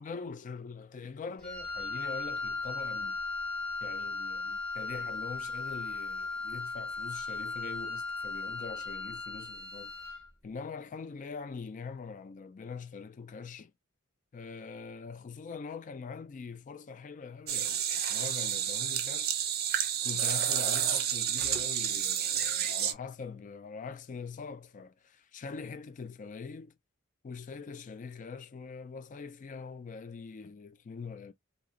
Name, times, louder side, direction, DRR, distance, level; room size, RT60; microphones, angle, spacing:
voice 1, 0.0-3.2 3.8-9.9 10.4-13.7 14.3-19.4 20.0-26.7 27.2-31.3, left 5 dB, 35° left, 0.4 m, -43 dB
Wind instrument woodwind instrument, 1.4-10.3, left 3 dB, 5° left, 1.2 m, -37 dB
sound 1, 17.5-22.9, right 9 dB, 50° right, 0.5 m, -30 dB
3.0 x 2.7 x 2.4 m
head